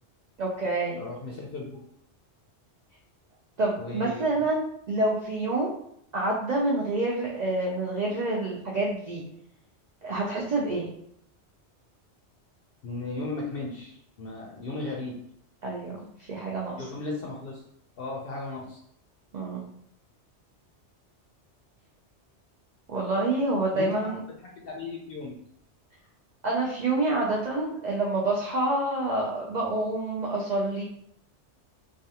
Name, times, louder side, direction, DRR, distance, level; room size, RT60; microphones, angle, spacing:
voice 1, 0.4-1.0 3.6-5.7 6.1-9.2 10.0-10.9 15.6-16.9 19.3-19.7 22.9-24.2 26.4-30.8, right 2 dB, 55° right, -3 dB, 0.5 m, -27 dB
voice 2, 1.0-1.8 3.8-4.4 12.8-15.2 16.8-17.6 18.0-18.8 23.7-23.9 24.6-25.4, left 3 dB, 65° left, -1 dB, 0.7 m, -36 dB
3.2 x 2.3 x 2.8 m, 0.70 s
omnidirectional pair, 1.2 m